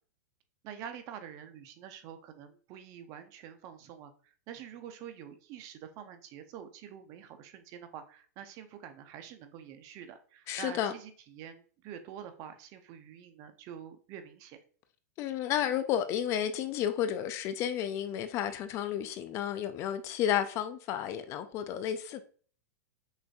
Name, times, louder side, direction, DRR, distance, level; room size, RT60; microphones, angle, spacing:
voice 1, 0.6-14.6, right 9 dB, 40° right, 0.6 m, -47 dB
voice 2, 10.5-10.9 15.2-22.2, left 10 dB, 30° left, 0.4 m, -32 dB
6.3 x 2.6 x 2.3 m
hypercardioid pair, 130°, 9 cm